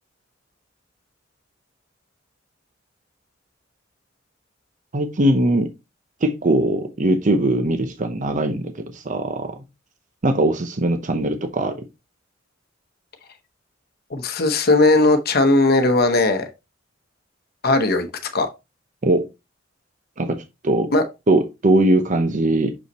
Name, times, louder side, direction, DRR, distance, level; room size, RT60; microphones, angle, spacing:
voice 1, 4.9-5.7 6.2-9.6 10.2-11.7 19.0-19.2 20.2-20.9 21.3-22.7, right 1 dB, 40° right, 0.7 m, -20 dB
voice 2, 14.1-16.5 17.6-18.1 18.3-18.5 20.9-21.0, left 2 dB, 55° left, 0.9 m, -17 dB
6.3 x 5.5 x 3.0 m
head